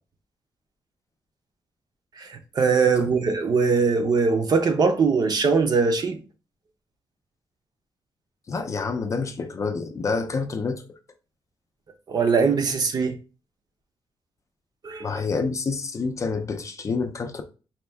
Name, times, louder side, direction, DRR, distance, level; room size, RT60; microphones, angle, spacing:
voice 1, 2.2-6.2 12.1-13.1 14.8-15.2, right 5 dB, 45° right, 0.6 m, -21 dB
voice 2, 8.5-10.8 15.0-17.4, left 4 dB, 35° left, 0.4 m, -28 dB
4.3 x 2.3 x 3.4 m
wide cardioid pair, 160°, 9 cm